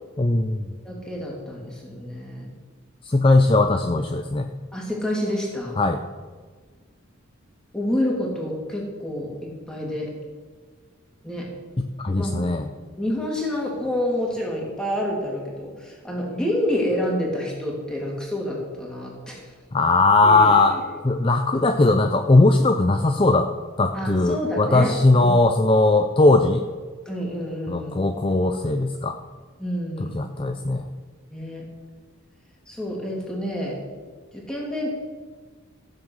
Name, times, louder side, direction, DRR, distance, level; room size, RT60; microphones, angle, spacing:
voice 1, 0.2-0.7 3.0-4.5 5.8-6.0 11.8-12.7 19.7-20.8 21.0-23.5 23.8-26.6 27.7-29.2 30.1-30.9, left 2 dB, 25° left, 6 dB, 0.5 m, -19 dB
voice 2, 0.8-2.5 4.7-5.8 7.7-10.1 11.2-11.5 12.2-12.6 13.0-19.5 20.2-20.8 23.9-25.4 27.1-27.9 29.6-30.2 31.3-31.6 32.7-33.8 34.3-34.9, left 1 dB, 5° left, -3 dB, 2.8 m, -28 dB
14.5 x 7.7 x 6.3 m, 1.5 s
head